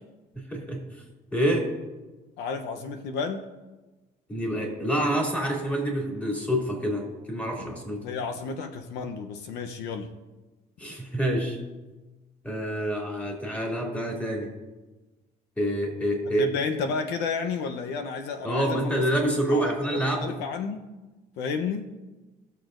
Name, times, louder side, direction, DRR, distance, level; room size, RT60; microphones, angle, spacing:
voice 1, 0.3-0.8 1.3-1.7 4.3-8.0 10.8-11.6 12.4-14.5 15.6-16.5 18.4-20.4, right 1 dB, 10° left, -1 dB, 2.7 m, -27 dB
voice 2, 2.4-3.5 7.6-7.7 8.0-10.1 16.4-20.8 21.4-21.9, left 5 dB, 85° left, 6 dB, 0.8 m, -32 dB
19.5 x 6.8 x 2.6 m, 1.2 s
cardioid pair, 110°, 17 cm